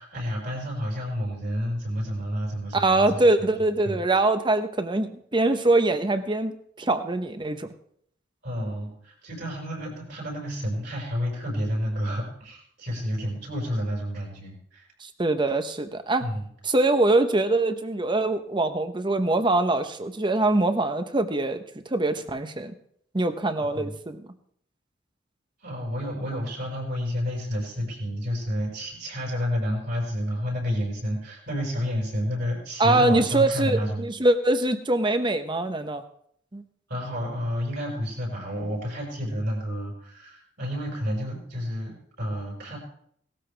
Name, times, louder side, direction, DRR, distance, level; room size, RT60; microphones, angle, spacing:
voice 1, 0.0-4.0 8.4-14.9 16.2-16.5 23.7-23.9 25.6-34.1 36.9-42.8, equal, 60° right, -1 dB, 5.4 m, -30 dB
voice 2, 2.7-7.7 15.0-16.2 16.6-21.6 21.9-22.8 23.1-24.2 32.8-36.0 36.5-36.6, right 2 dB, 25° right, 9 dB, 0.9 m, -23 dB
18.0 x 13.0 x 3.4 m, 0.67 s
head